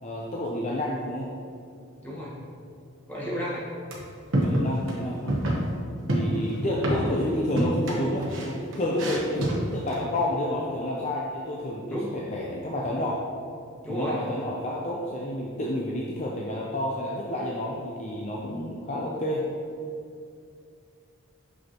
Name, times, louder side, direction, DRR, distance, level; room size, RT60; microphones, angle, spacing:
voice 1, 0.0-1.3 4.3-5.4 6.1-13.2 13.9-19.5, left 1 dB, 30° left, -3 dB, 0.5 m, -30 dB
voice 2, 2.0-2.3 3.1-3.7 11.9-12.1 13.8-14.2, equal, 10° left, -6 dB, 1.0 m, -32 dB
sound 1, 3.9-4.0 4.3-5.0 5.3-5.7 6.1-7.3 7.6-10.0, right 1 dB, 65° right, 1.0 m, -27 dB
6.2 x 5.1 x 2.9 m, 2.4 s
head